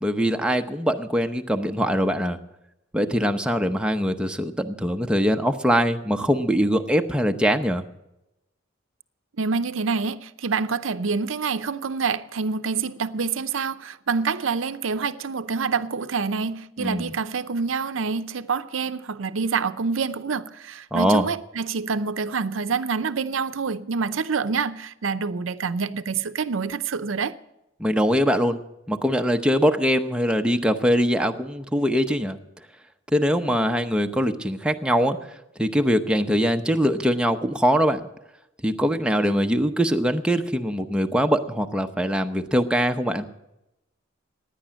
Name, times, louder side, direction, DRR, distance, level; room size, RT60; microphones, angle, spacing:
voice 1, 0.0-2.4 2.9-7.8 16.8-17.1 20.9-21.3 27.8-28.6 28.9-32.4 33.1-35.2 35.6-38.1 38.6-43.3, equal, 5° right, 0.8 m, -22 dB
voice 2, 9.4-27.4, right 5 dB, 80° right, 0.6 m, -27 dB
16.5 x 10.0 x 6.3 m
head